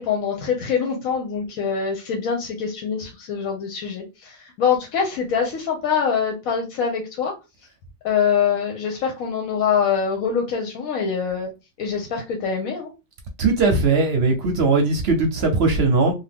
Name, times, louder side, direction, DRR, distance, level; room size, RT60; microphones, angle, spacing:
voice 1, 0.0-7.3 8.0-11.5 11.8-12.9, left 6 dB, 85° left, 1.1 m, -24 dB
voice 2, 13.4-16.1, right 3 dB, 60° right, 0.8 m, -19 dB
2.8 x 2.3 x 3.3 m
omnidirectional pair, 1.4 m